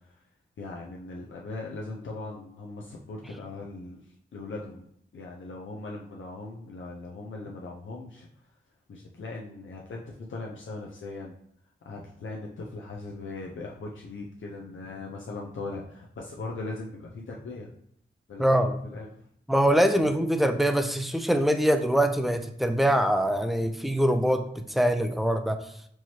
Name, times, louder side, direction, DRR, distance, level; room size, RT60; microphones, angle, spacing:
voice 1, 0.6-4.0 4.3-4.9 5.1-8.3 8.9-11.4 11.9-17.7 18.3-19.1 19.9-20.0, left 3 dB, 70° left, -2 dB, 0.6 m, -39 dB
voice 2, 18.4-18.7 19.5-25.6, equal, ahead, 6 dB, 0.4 m, -23 dB
4.6 x 3.0 x 2.8 m, 0.70 s
wide cardioid pair, 115°, 21 cm